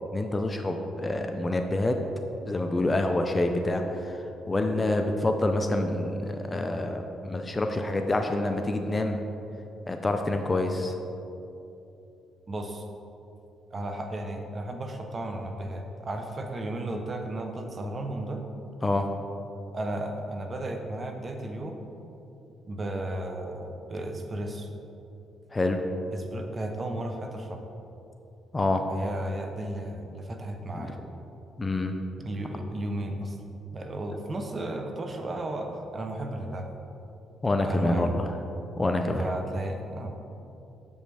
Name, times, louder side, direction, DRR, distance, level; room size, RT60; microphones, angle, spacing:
voice 1, 0.1-2.0 2.5-9.3 9.9-10.9 18.8-19.1 25.5-25.8 28.5-28.9 30.7-30.9 31.6-32.0 37.4-38.3 38.8-39.3, left 2 dB, 20° left, 5 dB, 0.4 m, -27 dB
voice 2, 12.5-12.8 13.7-18.4 19.7-21.8 22.7-24.7 26.1-27.6 28.9-31.0 32.2-33.4 33.7-36.7 37.6-38.1 39.2-40.2, right 1 dB, 35° right, 4 dB, 0.7 m, -34 dB
7.2 x 5.3 x 3.4 m, 2.8 s
cardioid pair, 90°, 0 cm